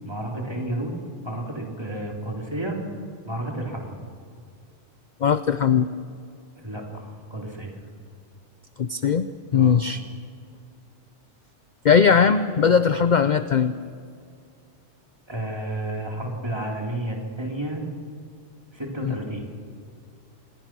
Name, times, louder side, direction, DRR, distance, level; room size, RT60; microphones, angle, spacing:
voice 1, 0.0-1.0 1.2-2.8 3.2-4.0 6.6-7.7 9.5-9.8 15.3-17.8 18.7-19.4, right 1 dB, 20° right, 0 dB, 3.4 m, -31 dB
voice 2, 5.2-5.9 8.8-9.3 9.5-10.0 11.8-13.7 19.0-19.2, left 6 dB, 45° left, 12 dB, 0.7 m, -19 dB
27.0 x 21.0 x 6.1 m, 2.3 s
omnidirectional pair, 1.2 m